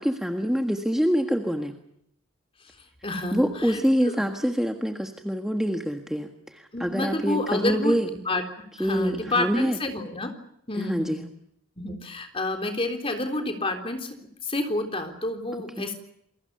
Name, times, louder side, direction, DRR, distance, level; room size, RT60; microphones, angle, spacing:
voice 1, 0.0-1.7 3.3-8.1 8.8-9.8 10.7-11.3 15.8-15.9, equal, ahead, 4 dB, 1.6 m, -25 dB
voice 2, 3.0-4.1 6.7-8.0 8.3-8.4 8.8-10.3 10.7-11.2 11.8-14.2 14.4-15.9, left 2 dB, 25° left, 6 dB, 3.7 m, -29 dB
29.0 x 22.5 x 6.9 m, 0.74 s
head